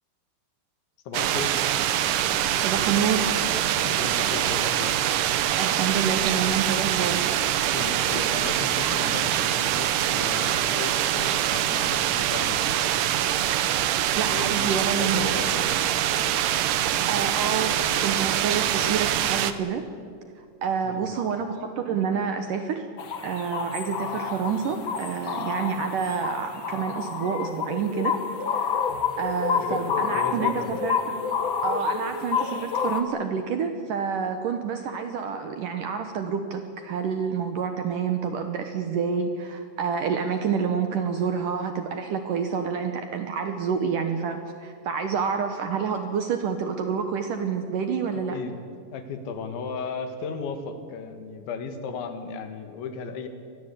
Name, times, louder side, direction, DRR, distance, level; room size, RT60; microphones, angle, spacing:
voice 1, 1.1-1.5 3.8-5.0 7.7-12.8 14.3-15.7 20.8-21.3 29.6-30.7 48.1-48.6 48.9-53.3, left 5 dB, 85° left, 8 dB, 4.2 m, -35 dB
sound 1, 1.1-19.5, right 11 dB, 90° right, 1.8 m, -24 dB
voice 2, 2.6-3.3 5.6-7.2 14.2-15.3 16.6-17.8 18.0-19.8 20.4-22.9 23.2-28.2 28.5-28.9 29.2-31.2 31.6-48.4, right 6 dB, 70° right, 7 dB, 2.1 m, -28 dB
sound 2, 23.0-33.0, left 6 dB, 65° left, 1.2 m, -29 dB
25.0 x 20.0 x 8.5 m, 2.2 s
omnidirectional pair, 5.2 m